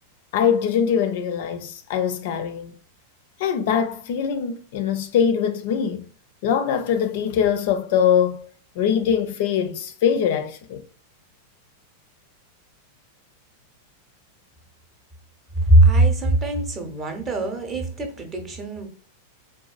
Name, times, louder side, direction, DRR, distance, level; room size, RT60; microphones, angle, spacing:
voice 1, 0.3-2.7 3.4-6.1 6.4-8.5 8.8-10.8, left 8 dB, 50° left, 0.4 m, -22 dB
voice 2, 15.6-18.9, right 1 dB, 25° right, 0.7 m, -20 dB
3.8 x 2.3 x 2.4 m
figure-of-eight pair, 90°, 0 cm